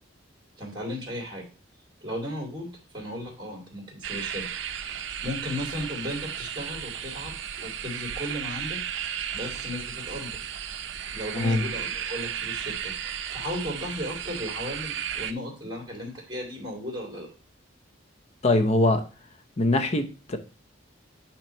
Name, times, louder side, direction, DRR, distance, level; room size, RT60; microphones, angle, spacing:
voice 1, 0.6-1.4 2.0-2.7 2.9-8.8 9.3-10.5 11.1-17.3, left 1 dB, 25° right, 2.3 m, -36 dB
sound 1, 4.0-15.3, right 9 dB, 65° right, 0.5 m, -34 dB
voice 2, 18.4-19.0 19.6-20.4, left 2 dB, 35° left, 0.7 m, -22 dB
8.8 x 3.0 x 4.3 m
head